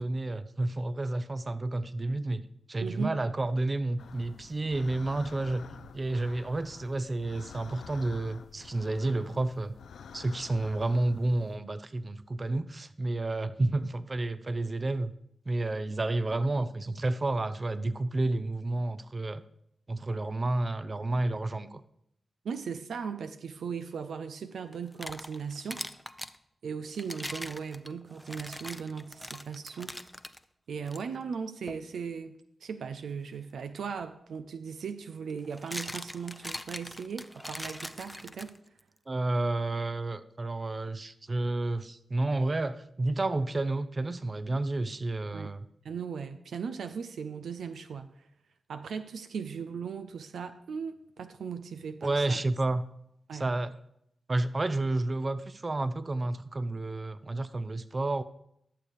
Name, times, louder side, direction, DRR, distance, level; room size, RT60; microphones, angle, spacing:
voice 1, 0.0-2.4 2.7-5.6 5.9-9.7 10.1-15.1 15.5-19.4 19.9-21.8 39.1-45.6 52.0-52.8 53.3-53.7 54.3-58.2, right 2 dB, 40° right, 14 dB, 0.6 m, -30 dB
voice 2, 2.8-3.1 22.4-25.8 26.6-29.9 30.7-32.3 32.6-38.5 45.3-45.5 45.8-48.3 48.7-52.4 53.3-53.6, right 6 dB, 85° right, 10 dB, 0.5 m, -38 dB
sound 1, 4.0-11.6, left 6 dB, 85° left, 0.5 m, -49 dB
sound 2, 24.7-26.4 26.9-30.4 30.9-31.0 31.7-31.9 34.0-34.1 35.3-38.8, equal, 5° left, 0.6 m, -41 dB
11.5 x 6.9 x 4.8 m, 0.74 s
cardioid pair, 45°, 0 cm